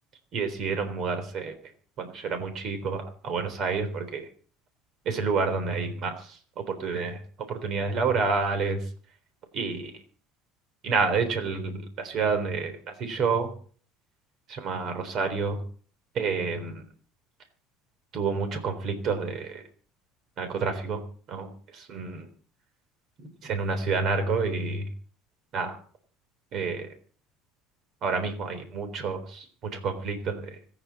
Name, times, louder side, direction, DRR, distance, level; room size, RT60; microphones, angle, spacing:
voice 1, 0.3-1.5 2.0-4.3 5.1-8.9 9.5-9.9 10.8-13.5 14.5-15.6 16.1-16.8 18.1-19.6 20.4-21.0 21.3-22.3 23.2-24.9 25.5-25.8 26.5-26.9 28.0-30.6, right 4 dB, 55° right, 8 dB, 3.7 m, -29 dB
26.0 x 9.2 x 4.2 m, 0.44 s
supercardioid pair, 95°, 0 cm